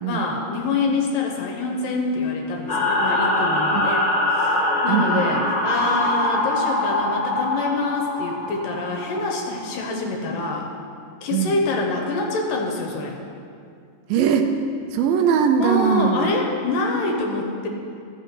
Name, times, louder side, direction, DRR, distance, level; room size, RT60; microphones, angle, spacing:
voice 1, 0.0-10.7 11.2-13.2 15.6-17.7, left 3 dB, 75° left, 0 dB, 2.4 m, -26 dB
sound 1, 2.7-9.6, left 1 dB, 30° left, 1.3 m, -23 dB
voice 2, 4.9-5.3 11.3-11.6 14.1-14.5 14.9-16.3, right 7 dB, 80° right, 5 dB, 2.2 m, -20 dB
14.5 x 5.9 x 4.3 m, 2.3 s
omnidirectional pair, 4.2 m